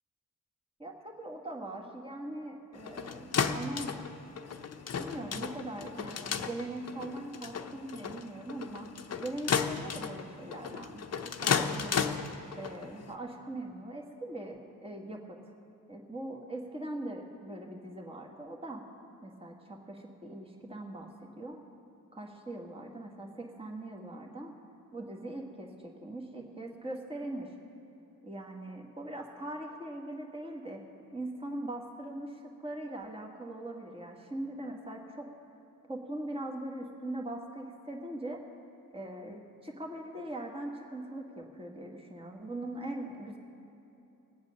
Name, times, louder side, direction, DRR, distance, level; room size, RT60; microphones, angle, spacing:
voice 1, 0.8-3.9 5.0-8.9 9.2-12.1 12.6-15.4 15.9-18.8 19.2-21.6 22.1-24.5 24.9-27.5 28.2-30.8 31.1-35.3 35.9-38.4 38.9-43.4, right 1 dB, 15° right, 1 dB, 1.7 m, -41 dB
sound 1, 2.7-13.1, left 6 dB, 45° left, 0.8 m, -34 dB
20.5 x 8.1 x 6.4 m, 2.9 s
cardioid pair, 70°, 35 cm